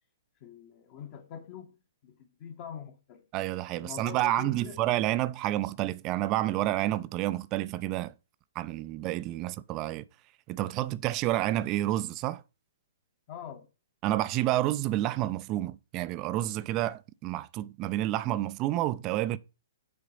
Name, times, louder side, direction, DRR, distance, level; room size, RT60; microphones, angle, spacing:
voice 1, 0.4-1.8 2.0-3.3 3.8-4.8 9.3-9.4 13.3-13.7, left 8 dB, 40° left, 1.1 m, -44 dB
voice 2, 3.3-8.1 8.6-10.0 10.5-12.4 14.0-19.4, right 15 dB, 30° right, 0.4 m, -29 dB
6.9 x 3.9 x 5.5 m
hypercardioid pair, 125°, 0 cm